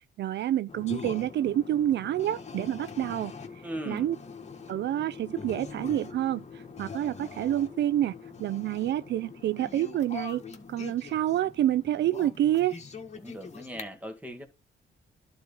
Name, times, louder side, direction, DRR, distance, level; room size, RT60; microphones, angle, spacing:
voice 1, 0.2-3.3 3.9-4.2 4.7-6.4 6.8-8.1 8.4-10.4 10.7-12.8, right 12 dB, 60° right, 0.4 m, -28 dB
sound 1, 0.7-13.8, left 5 dB, 35° left, 1.6 m, -43 dB
voice 2, 3.6-4.1 13.1-14.5, equal, 5° right, 2.1 m, -39 dB
11.5 x 4.1 x 5.3 m
cardioid pair, 90°, 20 cm